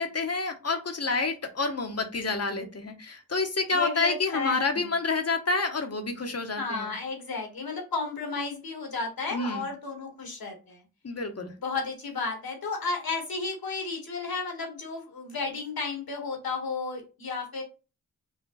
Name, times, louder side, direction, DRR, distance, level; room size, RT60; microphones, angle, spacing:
voice 1, 0.0-6.9 9.3-9.7 11.0-11.5, left 3 dB, 40° left, 6 dB, 1.1 m, -28 dB
voice 2, 3.7-4.9 6.6-10.8 11.6-17.6, left 4 dB, 75° left, 2 dB, 2.0 m, -33 dB
5.0 x 2.3 x 4.0 m, 0.31 s
cardioid pair, 50°, 36 cm